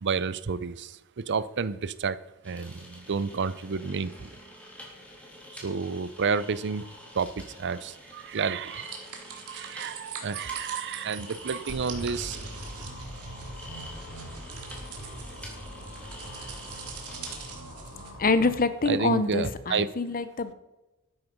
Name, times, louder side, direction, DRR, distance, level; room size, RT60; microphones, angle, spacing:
voice 1, 0.0-2.2 2.4-4.4 5.5-6.9 7.1-9.0 9.3-12.4 18.9-19.9, right 5 dB, 55° right, 17 dB, 0.6 m, -30 dB
sound 1, 2.4-17.5, equal, 5° left, 3.5 m, -47 dB
sound 2, 8.8-18.1, right 7 dB, 85° right, 2.6 m, -43 dB
sound 3, 11.7-18.5, equal, 85° left, 3.4 m, -42 dB
voice 2, 18.2-20.5, left 3 dB, 40° left, 13 dB, 0.9 m, -25 dB
12.5 x 9.5 x 5.3 m, 1.0 s
head